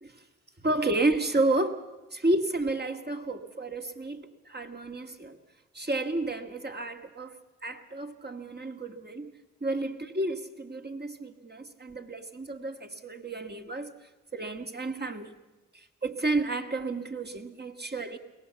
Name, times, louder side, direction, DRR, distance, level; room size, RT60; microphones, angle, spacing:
voice 1, 0.6-1.8 2.1-5.4 5.7-7.4 7.6-9.3 9.6-13.9 14.3-15.4 15.7-18.2, right 2 dB, 30° right, 5 dB, 1.9 m, -31 dB
22.5 x 18.0 x 7.1 m, 1.1 s
cardioid pair, 40°, 34 cm